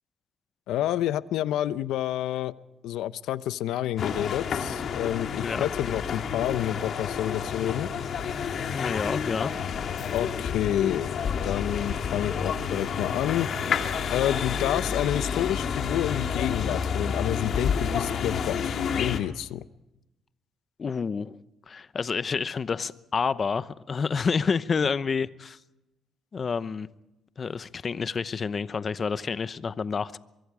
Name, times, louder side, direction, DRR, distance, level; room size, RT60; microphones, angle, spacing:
voice 1, 0.7-2.5 2.8-7.9 10.1-13.5 14.1-19.6, left 12 dB, 90° left, 15 dB, 0.7 m, -29 dB
sound 1, 4.0-19.2, left 6 dB, 60° left, 2.4 m, -29 dB
voice 2, 8.7-9.5 20.8-21.4 21.7-25.6 26.3-26.9 27.4-30.2, left 5 dB, 40° left, 15 dB, 0.8 m, -29 dB
23.5 x 23.5 x 5.0 m, 0.97 s
cardioid pair, 90°, 0 cm